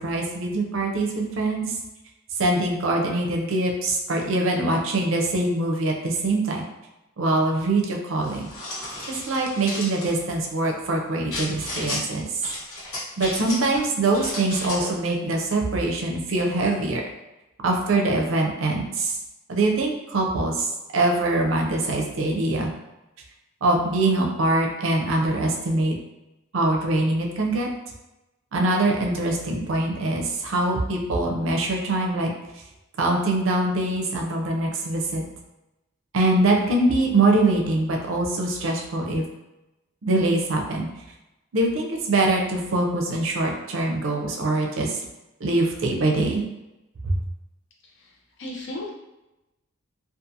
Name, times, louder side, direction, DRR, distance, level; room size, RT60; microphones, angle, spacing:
voice 1, 0.0-1.7 2.4-6.6 7.2-8.5 9.1-12.2 13.2-17.0 17.6-19.1 19.5-22.7 23.6-25.9 26.5-27.7 28.5-32.3 33.0-35.2 36.1-39.3 40.0-40.9 41.5-45.0 45.4-46.4 47.0-47.2, right 2 dB, 65° right, 1 dB, 0.5 m, -23 dB
sound 1, 8.2-10.1 11.3-12.0 12.4-13.8 14.1-14.9, left 1 dB, 90° left, 1.0 m, -33 dB
voice 2, 47.8-48.9, left 1 dB, 55° left, -2 dB, 0.6 m, -36 dB
2.5 x 2.4 x 2.7 m, 0.98 s
head